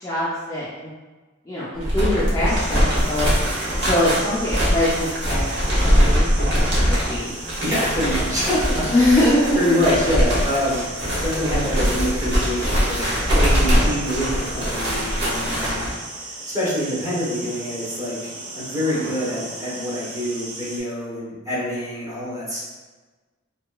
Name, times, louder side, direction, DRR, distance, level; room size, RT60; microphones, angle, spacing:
voice 1, 0.0-0.9 1.5-3.3 3.8-5.5 5.8-7.4 8.9-9.7, left 1 dB, 15° left, -9 dB, 0.4 m, -23 dB
sound 1, 1.7-15.9, equal, 60° right, 0.9 m, -22 dB
sound 2, 2.5-20.8, right 2 dB, 80° right, 0.5 m, -36 dB
voice 2, 7.6-9.2 9.5-11.0 11.2-15.9 16.5-22.6, equal, 15° right, -8 dB, 0.9 m, -25 dB
2.8 x 2.3 x 2.2 m, 1.3 s
head